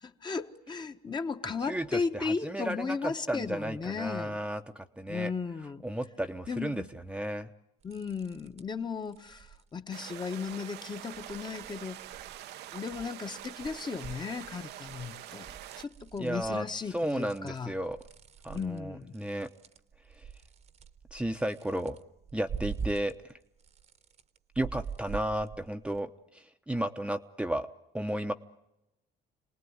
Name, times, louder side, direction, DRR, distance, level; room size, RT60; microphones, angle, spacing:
voice 1, 0.0-4.4 5.1-5.8 6.5-6.9 7.8-12.0 12.7-17.7 18.5-19.1, left 5 dB, 25° left, 1.3 m, -36 dB
voice 2, 1.6-5.3 5.8-7.5 16.2-18.0 18.4-19.5 20.1-20.3 21.1-22.0 22.3-23.3 24.6-27.7 27.9-28.3, right 1 dB, 5° right, 0.9 m, -33 dB
sound 1, 7.8-8.8 9.1-9.6 10.2-10.8 11.1-13.1 13.4-23.3 23.6-26.0, right 6 dB, 40° right, 1.1 m, -45 dB
sound 2, 9.9-15.8, right 13 dB, 80° right, 0.8 m, -45 dB
27.5 x 19.5 x 9.6 m
cardioid pair, 110°, 17 cm